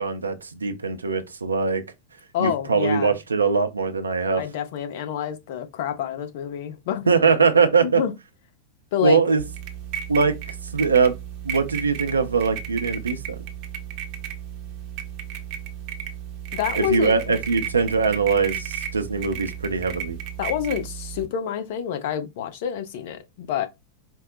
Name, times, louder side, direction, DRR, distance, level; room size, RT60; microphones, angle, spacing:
voice 1, 0.0-1.8 2.4-4.4 7.1-8.0 9.0-9.4 10.1-10.3 10.7-11.1 11.4-13.2 16.8-20.2, right 5 dB, 75° right, 0.6 m, -21 dB
voice 2, 2.3-3.2 4.3-7.1 7.8-8.1 8.9-9.2 16.5-17.6 20.4-23.7, left 9 dB, 50° left, 0.8 m, -28 dB
sound 1, 9.4-21.3, right 9 dB, 45° right, 0.8 m, -34 dB
4.5 x 2.1 x 3.8 m
figure-of-eight pair, 90°, 0 cm